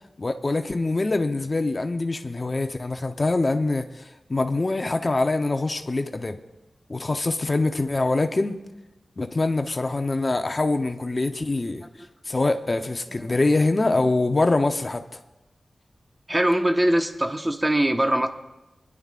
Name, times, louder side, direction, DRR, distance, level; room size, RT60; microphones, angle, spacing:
voice 1, 0.2-6.4 6.9-8.6 9.2-11.8 12.3-15.0, left 2 dB, 45° left, 0.8 m, -24 dB
voice 2, 16.3-18.3, right 1 dB, 20° right, 1.2 m, -22 dB
24.0 x 11.0 x 2.5 m
cardioid pair, 45°, 0 cm